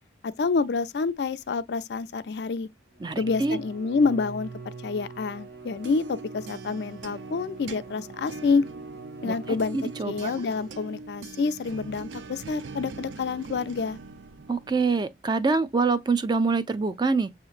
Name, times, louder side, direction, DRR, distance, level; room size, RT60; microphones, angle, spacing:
voice 1, 0.2-2.7 3.2-4.5 4.8-8.7 9.2-9.8 10.0-14.0, left 4 dB, 65° left, 0.4 m, -27 dB
Bowed string instrument, 2.9-11.2, right 4 dB, 70° right, 0.9 m, -44 dB
voice 2, 3.0-3.6 9.2-10.3 14.5-17.3, right 4 dB, 25° right, 0.3 m, -25 dB
sound 1, 5.5-15.2, right 3 dB, 90° right, 0.5 m, -42 dB
7.1 x 2.9 x 2.4 m
head